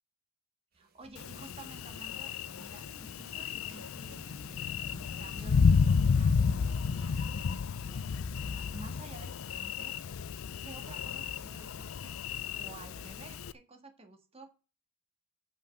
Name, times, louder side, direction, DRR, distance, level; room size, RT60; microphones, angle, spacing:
voice 1, 0.7-10.2 10.6-12.2 12.5-14.5, right 2 dB, 30° right, 6 dB, 1.6 m, -52 dB
sound 1, 0.7-2.3 2.7-5.8 6.1-9.9, right 1 dB, 45° right, 1.6 m, -57 dB
Thunder, 1.2-13.5, left 5 dB, 70° left, 0.4 m, -31 dB
7.3 x 5.7 x 7.5 m, 0.34 s
head